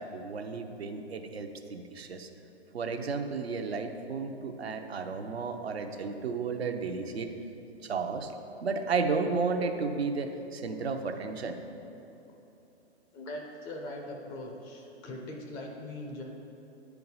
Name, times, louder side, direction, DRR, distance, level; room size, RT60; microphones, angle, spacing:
voice 1, 0.0-2.3 2.7-7.3 7.8-8.3 8.6-11.6, right 4 dB, 70° right, 5 dB, 0.8 m, -33 dB
voice 2, 13.1-16.2, left 1 dB, 15° left, 0 dB, 0.4 m, -41 dB
9.0 x 4.7 x 5.5 m, 3.0 s
figure-of-eight pair, 120°, 33 cm